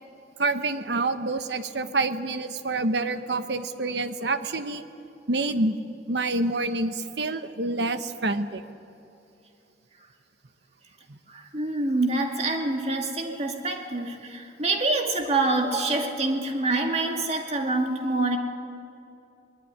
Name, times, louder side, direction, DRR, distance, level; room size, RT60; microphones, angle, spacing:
voice 1, 0.4-4.8 5.3-5.8 6.1-8.6 11.1-11.2 13.2-13.4, right 2 dB, 70° right, 9 dB, 1.1 m, -27 dB
voice 2, 11.3-18.4, right 2 dB, 35° right, 3 dB, 2.2 m, -26 dB
22.0 x 20.5 x 9.6 m, 2.7 s
head